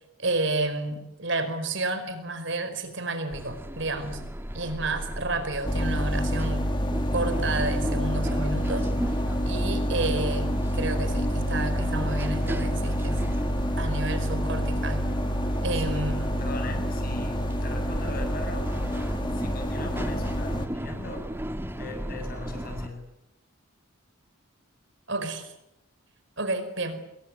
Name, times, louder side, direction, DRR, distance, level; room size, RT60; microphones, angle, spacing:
voice 1, 0.2-4.2 4.5-6.7 7.1-8.9 9.4-13.2 13.8-15.1 15.6-16.3 25.1-25.5 26.4-27.0, right 2 dB, 60° right, 10 dB, 4.9 m, -30 dB
sound 1, 3.3-22.9, equal, 10° right, 1.7 m, -36 dB
sound 2, 5.6-20.7, equal, 20° left, 2.0 m, -28 dB
voice 2, 15.7-18.8 19.3-21.4 21.7-23.1, left 2 dB, 45° left, 5 dB, 7.9 m, -40 dB
27.5 x 22.0 x 9.5 m, 0.81 s
head